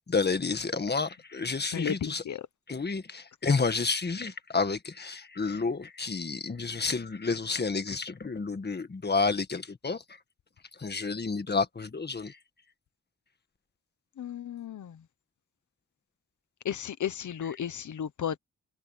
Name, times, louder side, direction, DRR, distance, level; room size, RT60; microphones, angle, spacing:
voice 1, 0.1-2.2 2.7-10.0 10.8-12.4 17.4-17.6, left 4 dB, 35° left, 1.7 m, -30 dB
voice 2, 1.7-2.4 14.2-14.9 16.6-18.4, left 8 dB, 85° left, 1.1 m, -34 dB
wide cardioid pair, 110°, 29 cm